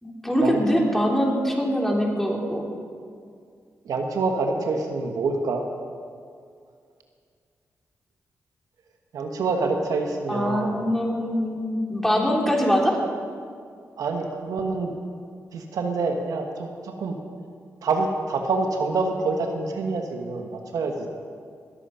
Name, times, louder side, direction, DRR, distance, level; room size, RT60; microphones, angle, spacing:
voice 1, 0.0-2.7 10.3-13.0, equal, 5° left, -1 dB, 3.2 m, -23 dB
voice 2, 3.8-5.6 9.1-10.8 14.0-14.9 15.5-17.2 17.8-21.1, right 3 dB, 85° right, 3 dB, 1.3 m, -26 dB
21.5 x 8.3 x 5.7 m, 2.2 s
cardioid pair, 70°, 6 cm